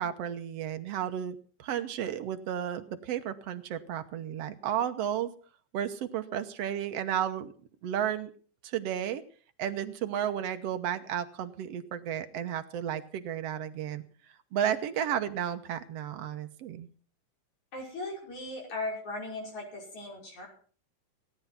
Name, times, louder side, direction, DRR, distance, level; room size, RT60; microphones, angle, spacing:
voice 1, 0.0-5.3 5.7-7.5 7.8-8.3 8.6-9.2 9.6-14.0 14.5-16.9, right 10 dB, 65° right, 9 dB, 1.8 m, -33 dB
voice 2, 17.7-20.5, left 2 dB, 65° left, 0 dB, 7.1 m, -38 dB
17.5 x 10.5 x 5.8 m, 0.43 s
omnidirectional pair, 3.6 m